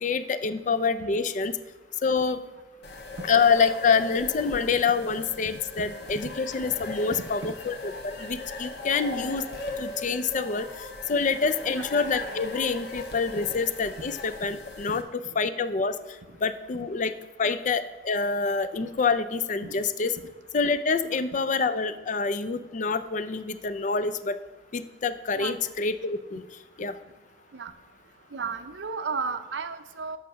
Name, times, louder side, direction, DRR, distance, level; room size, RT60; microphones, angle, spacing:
voice 1, 0.0-1.5 2.0-2.4 3.3-9.5 9.8-10.7 11.1-15.0 15.4-15.9 16.4-17.1 17.4-20.1 20.5-24.4 24.7-26.4 26.8-26.9, left 5 dB, 45° left, 12 dB, 0.4 m, -26 dB
sound 1, 2.8-15.0, left 3 dB, 65° left, 1.1 m, -39 dB
voice 2, 7.1-7.5 11.7-11.9 13.4-13.5 14.0-14.1 14.9-15.0 15.2-15.3 16.3-16.4 17.4-17.5 19.6-19.8 20.2-20.3 21.0-21.2 25.3-25.7 27.5-27.7 28.3-30.2, right 4 dB, 90° right, 10 dB, 0.6 m, -35 dB
8.1 x 5.7 x 6.1 m, 1.2 s
head